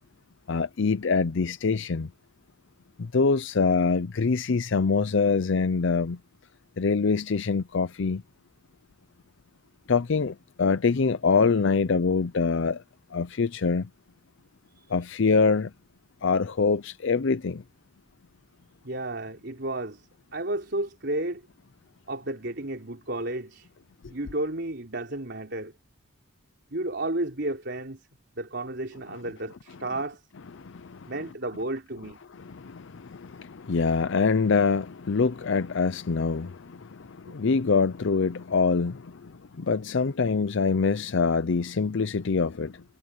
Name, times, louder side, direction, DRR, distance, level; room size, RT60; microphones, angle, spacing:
voice 1, 0.5-2.1 3.0-6.2 6.8-8.2 9.9-12.8 13.1-13.9 14.9-15.7 16.2-17.6 30.6-31.1 32.3-42.8, left 4 dB, 60° left, 0.5 m, -25 dB
voice 2, 18.8-21.4 22.1-23.7 24.1-25.7 26.7-28.0 28.4-30.2 31.1-32.2, right 2 dB, 55° right, 4.1 m, -32 dB
head